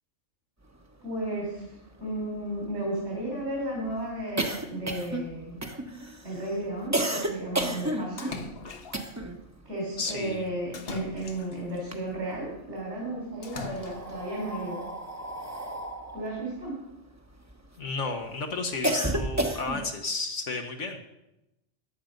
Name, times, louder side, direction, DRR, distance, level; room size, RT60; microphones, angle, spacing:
voice 1, 1.0-1.6 2.0-5.6 6.2-8.3 9.7-14.8 16.1-16.8, right 1 dB, 70° right, -4 dB, 4.0 m, -34 dB
sound 1, 1.2-1.3 1.6-1.7 2.0-9.5 9.7-11.3 11.7-12.6 13.3-17.8 18.2-20.0, right 1 dB, 15° right, 1.0 m, -33 dB
Splash splatter, 8.2-9.2 10.7-11.8 13.4-14.2, left 4 dB, 55° left, 1.2 m, -40 dB
voice 2, 10.0-10.5 17.8-21.0, left 3 dB, 80° left, 3 dB, 1.6 m, -32 dB
14.5 x 10.5 x 5.2 m, 0.89 s
omnidirectional pair, 1.2 m